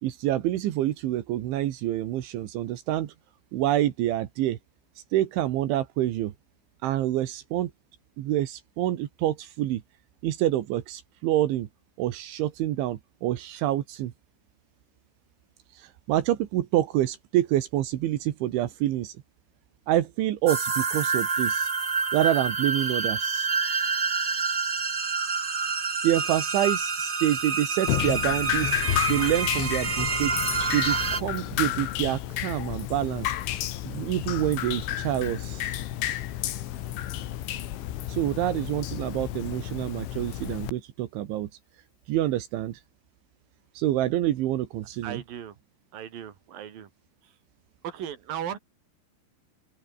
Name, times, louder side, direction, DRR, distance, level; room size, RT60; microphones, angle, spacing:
voice 1, 0.0-3.1 3.5-4.6 5.1-6.3 6.8-7.7 8.2-9.8 10.2-11.7 12.0-14.1 15.8-19.1 19.9-21.7 22.1-23.5 26.0-28.7 29.1-30.3 30.7-33.3 33.9-35.7 38.1-41.5 42.1-42.8 43.8-45.2, right 13 dB, 80° right, 3.9 m, -27 dB
sound 1, 20.5-31.2, right 4 dB, 30° right, 2.9 m, -28 dB
Drip, 27.9-40.7, left 13 dB, 90° left, 4.2 m, -31 dB
voice 2, 45.0-45.6 45.9-46.9 47.2-47.4 47.8-48.6, right 9 dB, 55° right, 4.3 m, -36 dB
open air
omnidirectional pair, 5.3 m